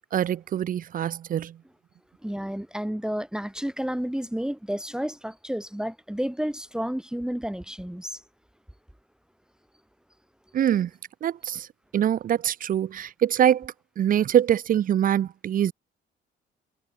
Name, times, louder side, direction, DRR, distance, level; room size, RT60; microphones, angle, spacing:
voice 1, 0.1-1.6 10.5-10.9 11.2-11.7 11.9-15.7, right 10 dB, 45° right, 0.4 m, -24 dB
voice 2, 2.2-8.2, equal, 5° right, 1.5 m, -31 dB
cardioid pair, 90°, 20 cm